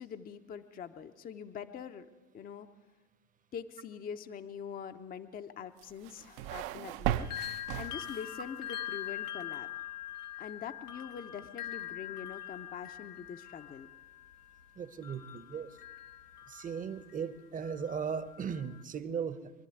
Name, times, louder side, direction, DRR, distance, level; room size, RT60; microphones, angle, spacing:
voice 1, 0.0-2.1 2.3-2.7 3.5-9.7 10.4-13.9, left 7 dB, 20° left, 8 dB, 0.8 m, -44 dB
sound 1, 5.8-8.5, right 12 dB, 45° right, 0.8 m, -36 dB
sound 2, 7.2-17.2 17.6-18.8, left 12 dB, 80° left, 1.4 m, -43 dB
voice 2, 14.8-15.8 16.5-19.5, right 6 dB, 20° right, 14 dB, 1.0 m, -37 dB
24.5 x 11.5 x 9.3 m, 1.2 s
hypercardioid pair, 105°, 45 cm